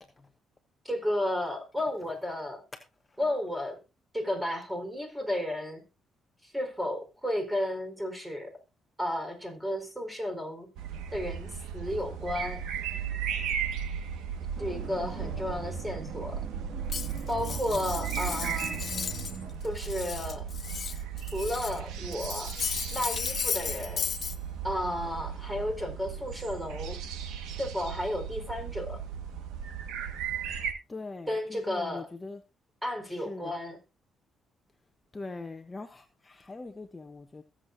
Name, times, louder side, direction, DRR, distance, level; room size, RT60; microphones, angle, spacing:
voice 1, 0.8-2.6 3.2-3.8 4.1-5.8 6.4-8.5 9.0-10.7 11.1-12.6 14.6-16.4 17.3-18.8 19.6-20.4 21.3-22.5 22.9-24.0 24.6-27.0 27.6-29.0 31.3-32.1 32.8-33.8, left 1 dB, 10° right, 4.4 m, -33 dB
sound 1, 10.8-30.7, right 8 dB, 90° right, 1.6 m, -36 dB
sound 2, 14.6-19.5, right 5 dB, 75° right, 2.1 m, -41 dB
voice 2, 15.0-15.4 30.5-30.6 30.9-32.4 33.0-33.5 35.1-37.4, left 3 dB, 20° left, 1.0 m, -43 dB
Cutlery silverware, 16.9-19.4 19.6-21.8 22.1-24.4, left 7 dB, 50° left, 0.8 m, -35 dB
22.0 x 7.5 x 2.7 m
cardioid pair, 90°, 0 cm